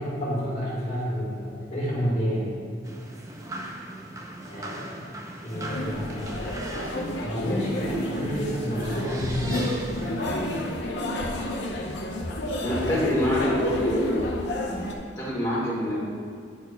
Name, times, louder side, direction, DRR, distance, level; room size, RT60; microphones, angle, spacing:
voice 1, 0.0-2.6 4.5-5.1 5.4-6.4 7.2-9.7 12.6-13.0, equal, 40° left, -6 dB, 1.6 m, -30 dB
sound 1, 2.8-10.8, right 1 dB, 20° right, 0.5 m, -39 dB
sound 2, 5.5-14.9, left 1 dB, 80° left, 0.7 m, -30 dB
voice 2, 12.6-14.2 15.2-16.0, equal, 20° left, -9 dB, 1.4 m, -26 dB
9.3 x 6.2 x 2.2 m, 2.3 s
head